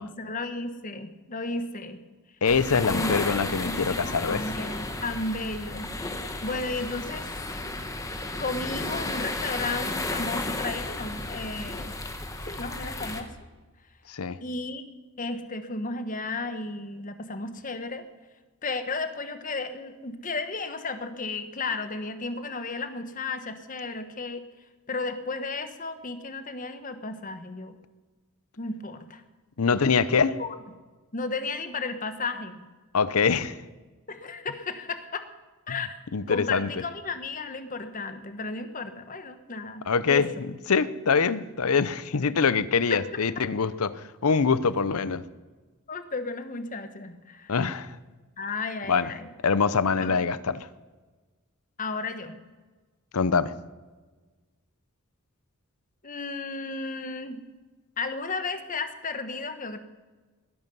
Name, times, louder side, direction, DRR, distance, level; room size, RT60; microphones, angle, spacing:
voice 1, 0.0-2.0 2.9-5.9 6.2-7.4 8.4-11.9 12.5-13.3 14.4-14.8 15.2-18.0 18.6-24.4 24.9-27.7 28.6-29.2 30.4-30.5 31.1-32.6 34.1-35.3 35.7-35.9 36.3-40.5 42.2-42.3 42.9-43.0 45.9-47.6 48.4-49.3 50.0-50.1 51.8-52.3 56.0-57.4 58.0-59.8, left 3 dB, 35° left, 1.2 m, -34 dB
voice 2, 2.4-4.4 14.1-14.4 29.6-30.4 32.9-33.6 36.1-36.7 39.9-40.3 40.7-45.2 47.5-47.9 48.9-49.1 49.4-50.7 53.1-53.5, left 5 dB, 80° left, 0.7 m, -24 dB
sound 1, 2.4-13.2, left 2 dB, 15° left, 1.2 m, -33 dB
21.5 x 11.5 x 5.5 m
head